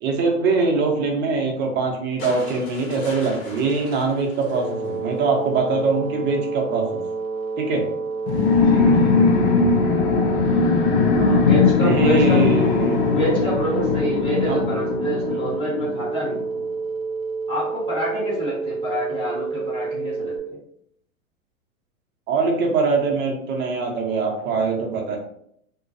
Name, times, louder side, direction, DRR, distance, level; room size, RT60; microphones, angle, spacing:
voice 1, 0.0-7.0 7.6-7.9 11.2-11.4 11.8-13.0 14.4-14.6 22.3-25.2, right 4 dB, 25° right, 1 dB, 0.6 m, -23 dB
sound 1, 2.2-5.5 6.8-6.9, left 2 dB, 75° left, 1.0 m, -40 dB
sound 2, 4.5-20.4, right 4 dB, 80° right, 0.7 m, -29 dB
sound 3, 8.3-16.4, left 5 dB, 45° left, 0.5 m, -19 dB
voice 2, 8.6-9.2 11.4-12.4 13.1-16.5 17.5-20.6, right 1 dB, 15° left, -8 dB, 1.1 m, -27 dB
2.4 x 2.2 x 2.5 m, 0.69 s
hypercardioid pair, 105°, 41 cm